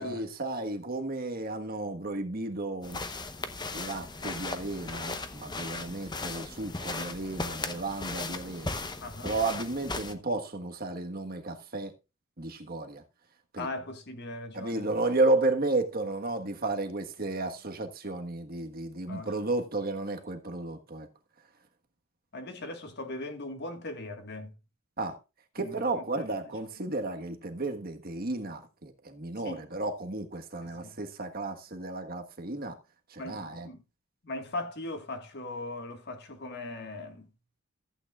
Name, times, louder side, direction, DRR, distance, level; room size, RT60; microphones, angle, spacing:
voice 1, 0.0-3.0 3.7-8.9 9.2-11.9 12.4-13.0 13.5-13.7 14.5-21.1 25.0-25.2 25.5-32.8 33.1-33.7, right 2 dB, 45° right, 1.4 m, -33 dB
sound 1, 2.8-10.1, left 3 dB, 20° left, 0.9 m, -37 dB
voice 2, 9.0-9.3 13.6-14.9 19.1-19.3 22.3-24.5 25.6-26.0 29.4-29.7 30.6-31.0 33.2-33.8 34.2-37.3, left 2 dB, 50° left, 1.7 m, -39 dB
14.5 x 8.8 x 2.4 m
head